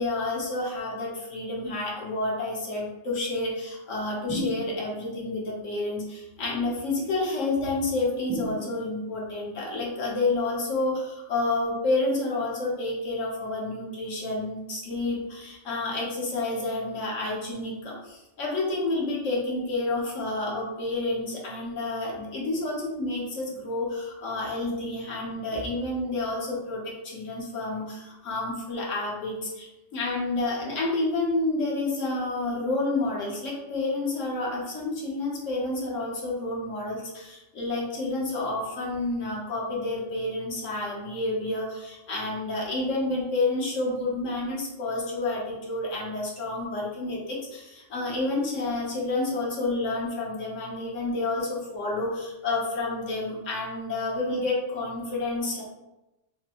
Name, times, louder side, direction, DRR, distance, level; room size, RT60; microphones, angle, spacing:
voice 1, 0.0-55.6, left 2 dB, 90° left, -3 dB, 1.4 m, -29 dB
sound 1, 4.3-5.1 8.3-9.2, equal, 25° right, 0.4 m, -34 dB
5.7 x 2.0 x 2.9 m, 0.98 s
omnidirectional pair, 1.3 m